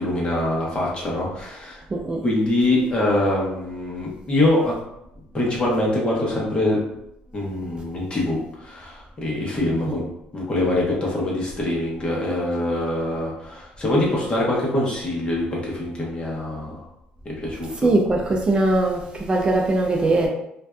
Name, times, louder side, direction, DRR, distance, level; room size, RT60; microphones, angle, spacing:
voice 1, 0.0-1.8 2.2-4.7 5.3-6.8 7.3-10.1 10.3-16.8 17.2-17.9, left 1 dB, 30° left, -3 dB, 0.9 m, -24 dB
voice 2, 1.9-2.2 9.9-10.0 17.8-20.3, right 2 dB, 25° right, 1 dB, 0.4 m, -21 dB
2.5 x 2.2 x 2.2 m, 0.82 s
supercardioid pair, 85°, 4 cm